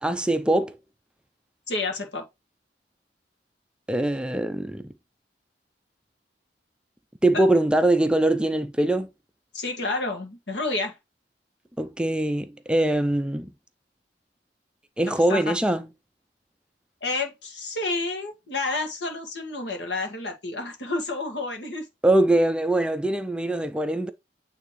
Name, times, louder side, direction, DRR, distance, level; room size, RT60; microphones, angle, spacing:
voice 1, 0.0-0.8 3.9-4.9 7.2-9.1 11.8-13.5 15.0-15.8 22.0-24.1, right 1 dB, 5° right, 0.4 m, -22 dB
voice 2, 1.7-2.3 7.3-7.4 9.5-11.0 15.3-15.6 17.0-21.9, left 3 dB, 80° left, 1.8 m, -30 dB
8.8 x 3.4 x 3.1 m
head